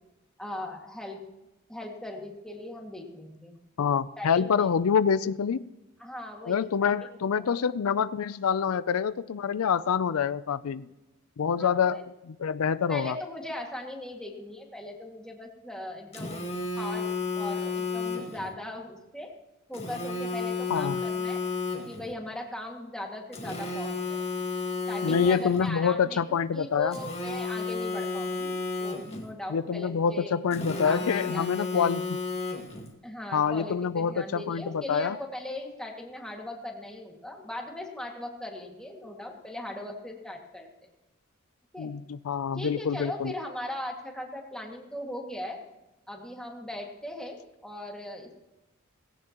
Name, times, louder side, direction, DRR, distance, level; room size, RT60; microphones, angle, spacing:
voice 1, 0.4-1.2 1.7-3.6 4.2-4.7 6.0-7.6 11.6-12.0 12.9-16.5 16.8-17.1 17.4-19.3 19.7-21.4 21.9-24.2 24.9-26.2 26.5-30.3 30.8-31.9 33.0-40.9 41.7-41.9 42.6-45.6 46.1-48.4, left 1 dB, 5° left, 0 dB, 2.0 m, -39 dB
voice 2, 3.8-5.7 6.5-10.9 11.4-13.2 20.7-21.0 25.0-27.0 29.5-32.1 33.3-35.2 41.8-43.3, left 6 dB, 85° left, 16 dB, 0.4 m, -26 dB
Telephone, 16.1-18.5 19.7-22.1 23.3-25.7 26.9-29.3 30.5-32.9, left 4 dB, 30° left, 2.0 m, -32 dB
18.0 x 16.5 x 3.0 m, 0.98 s
head